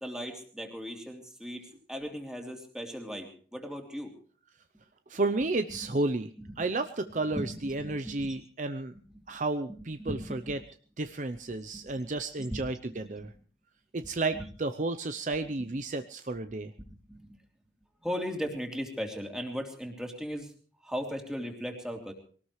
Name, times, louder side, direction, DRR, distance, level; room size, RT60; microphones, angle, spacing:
voice 1, 0.0-4.1 5.8-5.9 6.4-6.7 7.3-8.4 9.1-9.2 9.7-10.6 11.5-11.9 12.4-12.6 12.9-13.3 14.3-14.5 16.5-16.6 16.9-17.3 18.0-20.5 20.8-22.1, equal, 5° right, 2 dB, 2.9 m, -38 dB
voice 2, 5.1-6.3 6.6-8.9 9.3-10.6 11.0-13.3 13.9-16.7, right 2 dB, 45° right, 9 dB, 0.7 m, -32 dB
23.0 x 18.5 x 3.2 m, 0.42 s
head